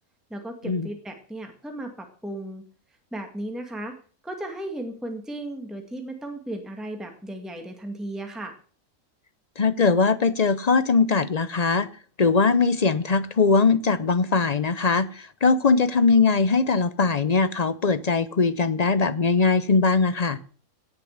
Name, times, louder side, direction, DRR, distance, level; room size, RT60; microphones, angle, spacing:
voice 1, 0.3-2.6 3.1-4.0 4.2-8.6, right 1 dB, ahead, 4 dB, 1.8 m, -35 dB
voice 2, 9.6-11.9 12.2-20.4, left 4 dB, 45° left, 14 dB, 0.5 m, -21 dB
17.5 x 6.7 x 7.2 m, 0.42 s
omnidirectional pair, 1.6 m